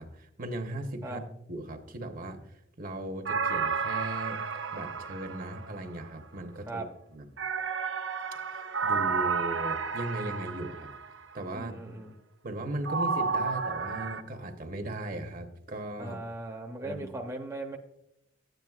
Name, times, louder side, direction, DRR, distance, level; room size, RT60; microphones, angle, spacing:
voice 1, 0.0-2.4 2.8-4.4 4.7-6.8 7.1-7.3 8.3-10.9 11.3-11.8 12.4-16.2 16.8-17.1, right 1 dB, 45° right, 6 dB, 0.9 m, -38 dB
sound 1, 3.3-6.1 7.4-11.2 12.9-14.2, right 5 dB, 75° right, 0.8 m, -31 dB
voice 2, 11.5-12.1 16.0-17.8, right 2 dB, 15° right, 1 dB, 0.7 m, -38 dB
13.0 x 9.1 x 2.4 m, 0.80 s
head